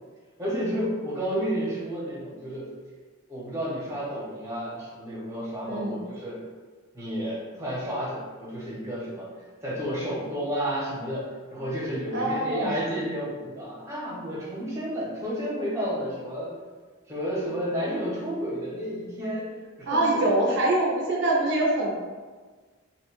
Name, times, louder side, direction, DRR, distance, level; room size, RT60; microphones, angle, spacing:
voice 1, 0.4-2.7 3.3-6.4 6.9-9.3 9.6-16.5 17.1-19.5 19.8-20.3, equal, 15° right, -6 dB, 0.7 m, -31 dB
voice 2, 5.6-6.0 12.1-12.8 19.9-21.9, right 2 dB, 60° right, -3 dB, 0.5 m, -24 dB
2.6 x 2.1 x 2.9 m, 1.4 s
head